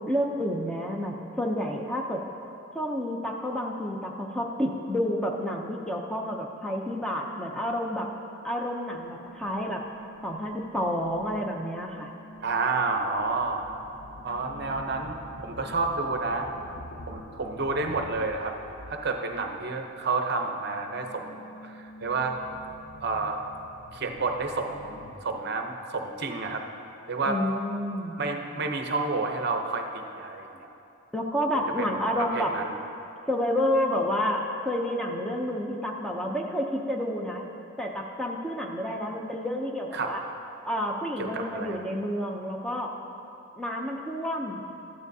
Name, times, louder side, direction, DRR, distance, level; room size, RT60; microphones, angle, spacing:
voice 1, 0.1-2.2 2.7-8.1 8.4-9.8 10.2-12.1 27.2-28.2 31.1-32.6 33.3-37.5 37.8-40.2 40.6-42.9 43.6-44.6, equal, 5° left, 0 dB, 0.5 m, -29 dB
sound 1, 8.9-19.7 20.0-25.2, left 1 dB, 50° left, 0.5 m, -47 dB
voice 2, 12.4-13.7 14.2-15.2 15.4-16.5 17.1-18.6 18.9-22.4 23.0-23.5 23.9-26.6 27.1-27.4 28.2-30.7 31.5-31.9 32.2-32.7 39.9-40.1 41.2-41.8, right 3 dB, 50° right, 4 dB, 0.7 m, -30 dB
13.5 x 9.6 x 2.7 m, 2.8 s
head